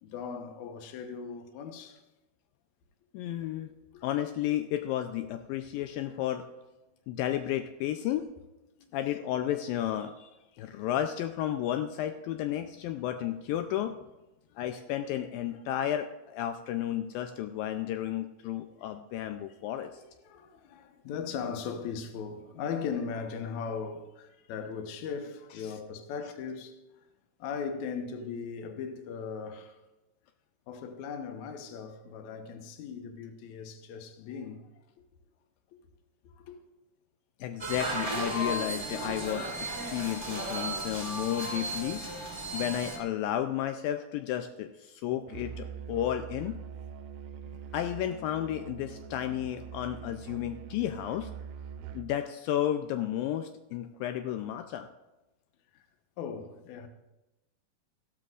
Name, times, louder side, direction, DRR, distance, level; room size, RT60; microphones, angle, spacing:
voice 1, 0.0-2.0 3.2-3.3 3.9-4.1 5.8-6.2 8.8-8.9 14.7-14.8 19.6-26.8 27.4-29.8 30.7-34.7 35.7-35.8 36.2-36.6 56.2-56.9, left 6 dB, 75° left, 1.7 m, -38 dB
voice 2, 3.1-3.7 4.0-6.4 7.1-8.3 8.9-10.3 10.6-13.9 14.6-20.0 37.4-42.0 42.5-46.6 47.7-51.3 51.9-54.9, left 11 dB, 90° left, 2.0 m, -32 dB
sound 1, 37.6-43.0, right 1 dB, 35° right, 0.4 m, -35 dB
Musical instrument, 45.3-52.2, right 7 dB, 80° right, 2.3 m, -43 dB
15.5 x 13.0 x 2.5 m
omnidirectional pair, 4.7 m